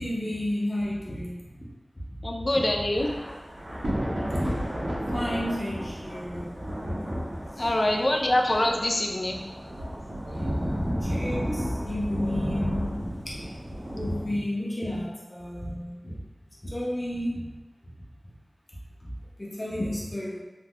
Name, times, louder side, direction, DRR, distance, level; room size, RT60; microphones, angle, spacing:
voice 1, 0.0-1.7 5.1-6.7 10.3-10.7 11.0-13.5 13.9-16.2 16.6-17.5 19.0-19.1 19.4-20.4, left 1 dB, 35° left, -6 dB, 0.8 m, -32 dB
voice 2, 2.2-3.1 7.6-9.4, left 1 dB, 60° left, 1 dB, 0.4 m, -25 dB
Thunder / Rain, 2.9-14.2, equal, 80° right, 1.1 m, -32 dB
3.6 x 2.8 x 2.4 m, 1.1 s
wide cardioid pair, 55°, 0 cm